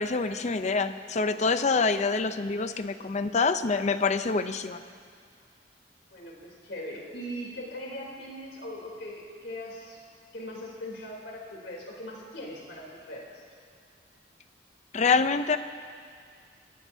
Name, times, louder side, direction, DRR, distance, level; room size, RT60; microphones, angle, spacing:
voice 1, 0.0-4.8 14.9-15.6, left 4 dB, 40° left, 11 dB, 0.6 m, -26 dB
voice 2, 6.1-10.0 10.3-13.4, equal, 80° left, -2 dB, 3.3 m, -40 dB
25.0 x 17.0 x 2.7 m, 2.2 s
head